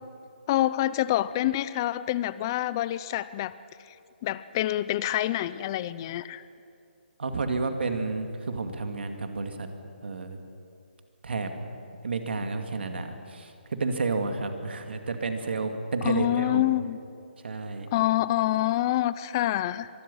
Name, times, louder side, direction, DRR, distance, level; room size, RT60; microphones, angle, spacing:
voice 1, 0.5-3.5 4.2-6.4 16.0-17.0 17.9-19.9, left 14 dB, 20° left, 16 dB, 0.5 m, -26 dB
voice 2, 7.2-9.7 10.0-10.4 11.2-11.5 12.0-16.6 17.4-17.9, right 3 dB, 70° right, 5 dB, 2.5 m, -31 dB
24.5 x 20.5 x 5.7 m, 2.5 s
hypercardioid pair, 165°, 6 cm